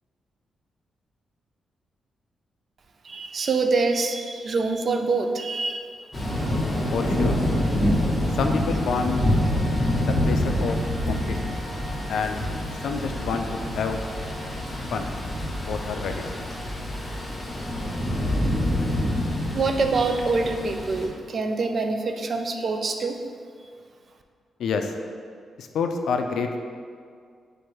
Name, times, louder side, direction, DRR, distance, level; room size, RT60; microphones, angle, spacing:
voice 1, 3.0-5.9 19.5-23.2, right 3 dB, 45° right, 5 dB, 0.3 m, -25 dB
Thunder / Rain, 6.1-21.1, left 1 dB, 15° left, 0.8 m, -26 dB
voice 2, 6.9-7.4 8.3-9.2 10.0-10.8 11.1-11.6 12.1-12.4 12.8-14.0 14.9-15.1 15.6-16.3 24.6-24.9 25.6-26.6, left 5 dB, 80° left, 5 dB, 0.3 m, -28 dB
4.3 x 2.6 x 4.6 m, 2.1 s
cardioid pair, 120°, 0 cm